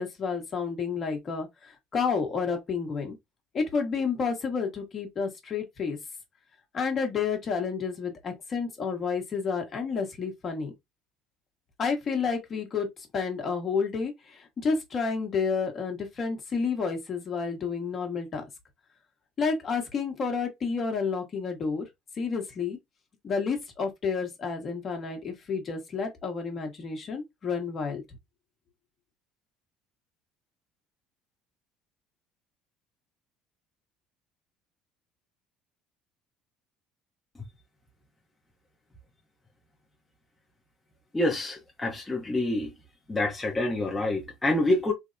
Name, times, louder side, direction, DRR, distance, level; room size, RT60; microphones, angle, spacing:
voice 1, 0.0-3.2 3.5-6.0 6.7-10.7 11.8-12.9 13.1-18.4 19.4-21.8 22.2-22.8 23.2-28.0, left 5 dB, 40° left, 1.1 m, -30 dB
voice 2, 41.1-42.7 43.1-44.9, left 2 dB, 15° left, 0.7 m, -27 dB
3.3 x 2.0 x 2.6 m
supercardioid pair, 95°, 0 cm